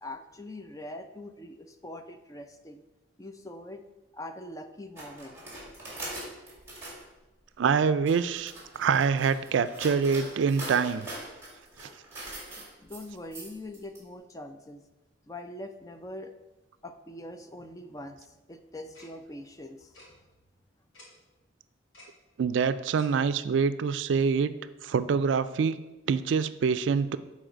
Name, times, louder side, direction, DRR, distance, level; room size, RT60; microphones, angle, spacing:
voice 1, 0.0-2.8 3.2-3.8 4.1-5.4 12.6-14.8 15.3-16.3 16.8-19.9, left 1 dB, 20° left, 8 dB, 0.4 m, -43 dB
sound 1, 5.0-7.0 7.8-14.0, right 1 dB, 15° right, 2.1 m, -42 dB
voice 2, 7.6-11.1 22.4-24.5 24.8-25.8 26.1-27.2, right 6 dB, 70° right, 13 dB, 0.3 m, -25 dB
Tick-tock, 18.9-19.1 19.9-20.1 20.9-21.1 21.9-22.1 22.9-23.1, left 1 dB, 90° left, 2.4 m, -51 dB
7.7 x 4.1 x 5.0 m, 1.1 s
head